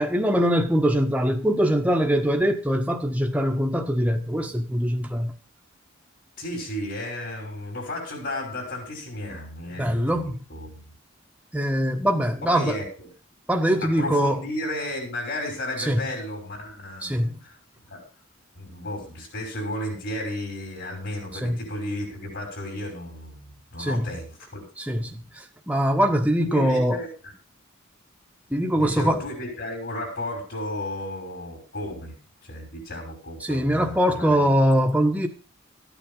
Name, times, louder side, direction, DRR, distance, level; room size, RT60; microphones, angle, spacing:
voice 1, 0.0-5.3 9.8-10.4 11.5-12.8 13.5-14.4 15.8-16.0 17.0-17.4 21.4-21.6 23.8-24.1 24.8-27.0 28.5-29.3 33.4-35.3, equal, 5° right, 1.3 m, -23 dB
voice 2, 6.4-10.9 12.4-13.1 13.8-17.5 17.9-18.0 18.5-24.6 26.4-27.1 28.7-32.1 32.4-34.5, left 1 dB, 60° left, 5.9 m, -33 dB
14.0 x 9.1 x 5.5 m
head